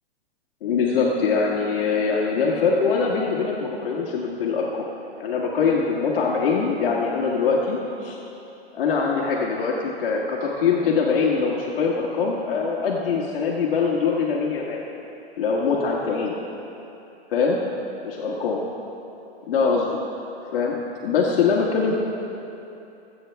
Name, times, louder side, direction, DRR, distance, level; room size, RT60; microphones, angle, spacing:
voice 1, 0.6-4.9 5.2-8.2 8.7-14.8 15.4-16.3 17.3-17.6 18.0-18.6 19.5-19.9 20.4-21.9, left 5 dB, 55° left, -3 dB, 1.5 m, -23 dB
22.0 x 8.6 x 3.4 m, 2.9 s
hypercardioid pair, 175°, 32 cm